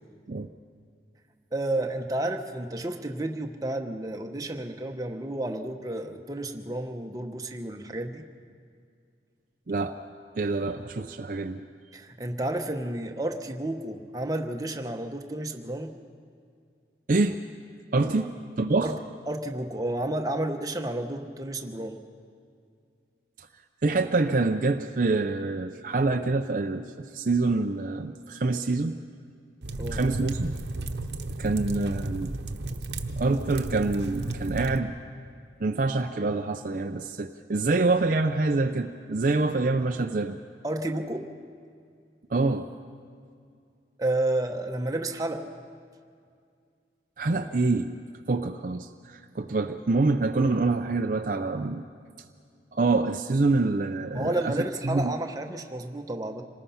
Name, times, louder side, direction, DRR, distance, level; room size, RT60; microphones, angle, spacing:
voice 1, 1.5-8.2 11.9-15.9 17.9-18.3 18.8-19.0 19.3-22.0 29.7-30.0 40.6-41.3 44.0-45.5 54.1-56.4, right 1 dB, 20° right, 4 dB, 1.0 m, -31 dB
voice 2, 9.7-10.0 10.3-11.6 17.1-17.4 17.9-18.3 18.6-18.9 23.4-23.5 23.8-29.0 29.9-30.5 31.4-32.4 33.2-34.9 35.6-40.4 42.3-42.7 47.2-47.9 48.3-51.8 52.7-55.2, right 3 dB, 50° right, 6 dB, 0.5 m, -26 dB
sound 1, 29.6-34.8, right 2 dB, 85° right, 1.0 m, -33 dB
26.5 x 19.5 x 5.7 m, 2.3 s
head